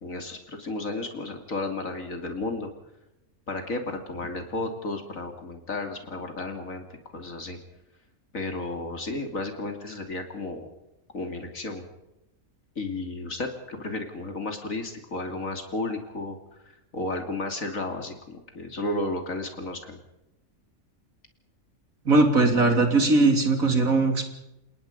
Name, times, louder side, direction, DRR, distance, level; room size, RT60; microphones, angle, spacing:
voice 1, 0.0-2.7 3.5-6.8 7.1-7.6 8.3-10.7 11.1-11.8 12.8-16.4 16.9-20.0, left 2 dB, 65° left, 5 dB, 3.1 m, -33 dB
voice 2, 22.1-24.3, right 3 dB, 70° right, 5 dB, 3.6 m, -20 dB
29.0 x 19.0 x 5.3 m, 0.89 s
omnidirectional pair, 1.5 m